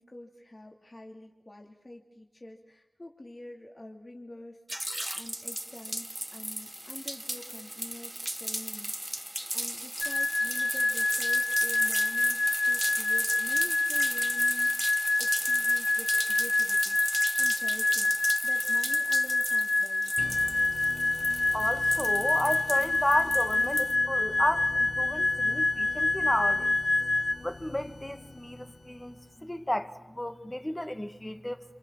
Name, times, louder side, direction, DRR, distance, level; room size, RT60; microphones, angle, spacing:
voice 1, 0.0-9.2 9.5-17.0 17.4-20.1, left 1 dB, 35° left, 2.7 m, -47 dB
sound 1, 4.7-23.9, right 1 dB, 10° right, 1.0 m, -36 dB
sound 2, 10.0-27.3, left 2 dB, 90° left, 1.6 m, -27 dB
sound 3, 20.2-29.5, left 3 dB, 60° left, 1.1 m, -45 dB
voice 2, 21.5-26.7 27.4-31.6, left 1 dB, 20° left, 1.8 m, -32 dB
29.5 x 27.0 x 7.5 m
wide cardioid pair, 75°, 0 cm